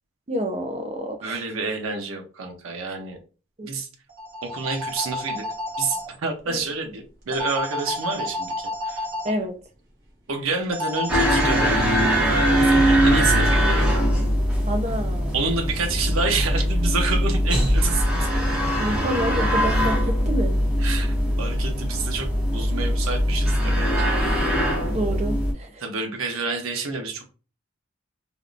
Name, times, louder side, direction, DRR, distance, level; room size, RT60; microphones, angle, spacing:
voice 1, 0.3-1.4 3.6-3.7 6.5-6.6 9.2-9.6 14.7-15.3 18.8-20.6 24.9-25.8, equal, 30° right, 4 dB, 0.5 m, -28 dB
voice 2, 1.2-3.2 3.6-3.9 4.4-5.4 5.8-9.1 10.3-11.8 12.5-13.9 15.3-18.8 20.8-24.1 25.8-27.3, right 4 dB, 90° right, 3 dB, 0.6 m, -29 dB
sound 1, 4.1-6.1 7.3-9.3 10.7-12.7, left 1 dB, 50° right, 1.1 m, -31 dB
sound 2, 11.1-25.5, equal, 5° right, 1.0 m, -21 dB
3.5 x 2.3 x 2.4 m, 0.35 s
head